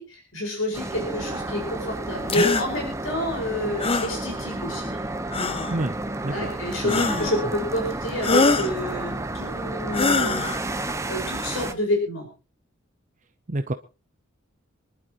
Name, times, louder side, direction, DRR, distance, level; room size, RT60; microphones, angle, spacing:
voice 1, 0.0-5.0 6.3-12.3, left 1 dB, 65° left, 1 dB, 5.2 m, -29 dB
sound 1, 0.7-11.7, right 2 dB, 15° right, 1.0 m, -31 dB
sound 2, 2.3-2.7 3.8-4.1 5.3-5.8 6.9-7.4 8.2-8.7 9.9-10.6, left 3 dB, 25° left, 0.8 m, -23 dB
voice 2, 6.8-7.3 13.5-13.7, right 2 dB, 40° right, 8 dB, 0.8 m, -28 dB
26.5 x 11.5 x 3.0 m, 0.31 s
head